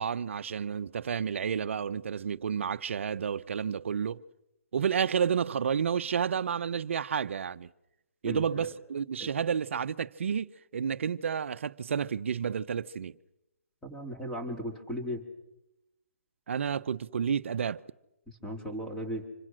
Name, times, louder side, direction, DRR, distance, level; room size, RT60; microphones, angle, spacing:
voice 1, 0.0-4.2 4.7-7.7 8.2-13.1 16.5-17.8, right 7 dB, 60° right, 0.8 m, -30 dB
voice 2, 8.2-8.7 9.2-9.3 13.8-15.2 18.4-19.2, equal, 5° left, 3.7 m, -36 dB
26.5 x 24.0 x 6.4 m
hypercardioid pair, 150°, 7 cm